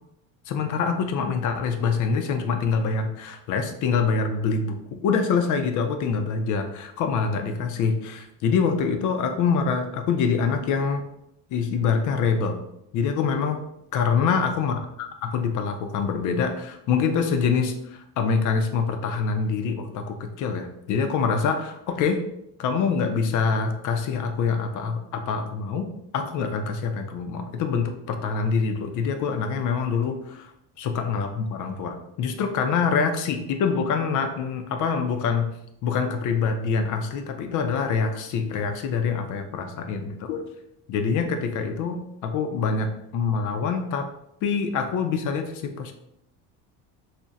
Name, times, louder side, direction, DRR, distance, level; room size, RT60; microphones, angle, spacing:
voice 1, 0.5-11.0 11.5-12.6 12.9-13.6 13.9-22.2 22.6-25.9 26.1-30.5 30.8-35.5 35.8-40.4 40.9-44.1 44.4-45.9, left 5 dB, 55° left, 6 dB, 0.5 m, -25 dB
2.5 x 2.1 x 3.9 m, 0.80 s
cardioid pair, 130°, 37 cm